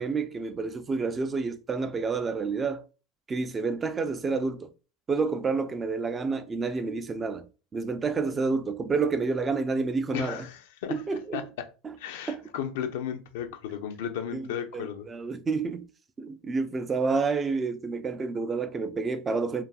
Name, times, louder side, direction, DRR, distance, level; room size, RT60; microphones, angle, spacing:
voice 1, 0.0-2.9 3.3-4.7 5.1-7.5 7.7-10.4 10.9-11.4 12.3-12.4 14.3-15.9 16.2-19.6, right 4 dB, 25° right, 0.3 m, -29 dB
voice 2, 10.1-11.0 11.3-11.7 12.0-15.1, left 8 dB, 75° left, 0.4 m, -34 dB
2.5 x 2.3 x 2.3 m
hypercardioid pair, 85°, 0 cm